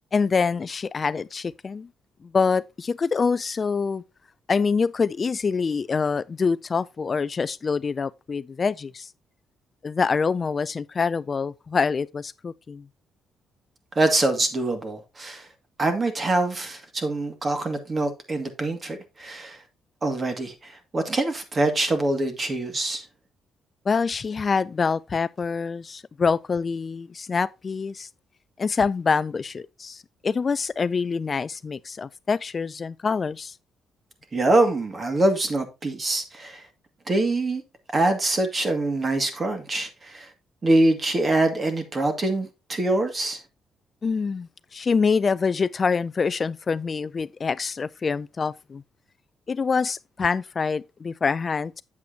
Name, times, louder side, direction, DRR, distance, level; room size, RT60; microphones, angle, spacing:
voice 1, 0.1-1.9 2.2-4.0 4.5-9.1 9.8-12.8 23.9-28.1 28.6-33.6 44.0-48.8 49.5-51.8, left 5 dB, 35° left, 0.3 m, -25 dB
voice 2, 14.0-15.5 15.8-19.6 20.0-23.0 34.3-36.6 37.1-37.6 37.9-40.3 40.6-43.4, right 2 dB, 35° right, 2.1 m, -24 dB
8.5 x 7.8 x 2.8 m
cardioid pair, 90°, 0 cm